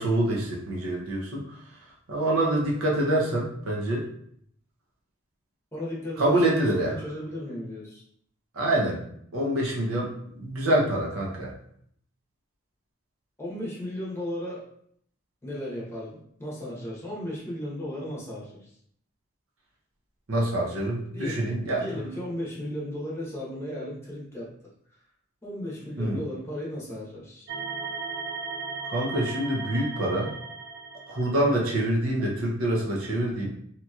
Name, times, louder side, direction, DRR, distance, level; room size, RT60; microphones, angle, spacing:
voice 1, 0.0-1.4 2.1-4.0 6.2-6.9 8.6-9.0 9.3-10.1 10.4-11.5 20.3-21.8 26.0-26.2 28.8-30.3 31.1-33.5, right 1 dB, 80° right, -3 dB, 0.7 m, -26 dB
voice 2, 5.7-8.0 13.4-14.7 15.4-18.7 21.1-21.4 21.8-24.5 25.4-27.5, left 1 dB, 15° left, -6 dB, 1.0 m, -35 dB
sound 1, 27.5-31.8, right 4 dB, 50° right, 0.4 m, -36 dB
2.9 x 2.8 x 2.4 m, 0.67 s
head